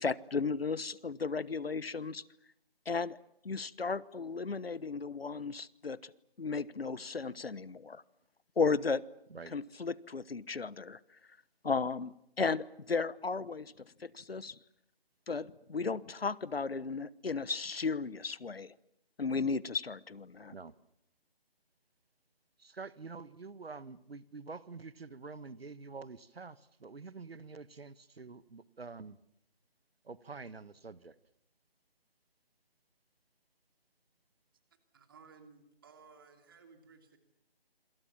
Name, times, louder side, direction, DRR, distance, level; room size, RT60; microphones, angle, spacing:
voice 1, 0.0-2.2 2.9-3.2 3.4-6.1 6.4-8.0 8.6-9.0 9.5-11.0 11.6-13.7 14.0-14.5 15.3-18.7 19.2-20.5, left 4 dB, 75° left, 20 dB, 1.2 m, -34 dB
voice 2, 22.6-29.2 30.0-31.1, right 4 dB, 75° right, 16 dB, 1.5 m, -47 dB
voice 3, 34.9-37.2, right 5 dB, 20° right, 6 dB, 2.9 m, -58 dB
27.0 x 27.0 x 7.3 m, 0.77 s
figure-of-eight pair, 170°, 30 cm